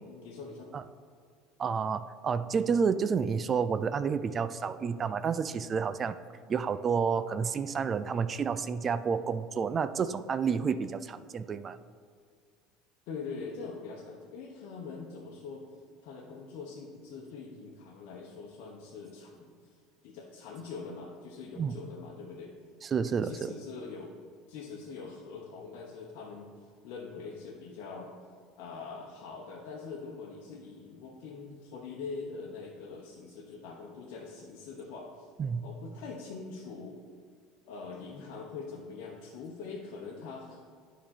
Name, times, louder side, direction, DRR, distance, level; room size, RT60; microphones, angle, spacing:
voice 1, 0.0-0.7 13.1-15.6 16.0-19.7 20.0-22.6 23.2-24.1 24.5-26.5 26.8-28.1 28.6-35.3 35.6-37.0 37.6-40.6, left 4 dB, 70° left, -3 dB, 1.0 m, -43 dB
voice 2, 1.6-6.2 6.5-11.8 21.6-21.8 22.8-23.5 35.4-35.7, right 6 dB, 35° right, 13 dB, 0.3 m, -30 dB
8.7 x 5.1 x 4.3 m, 2.2 s
supercardioid pair, 90°, 0 cm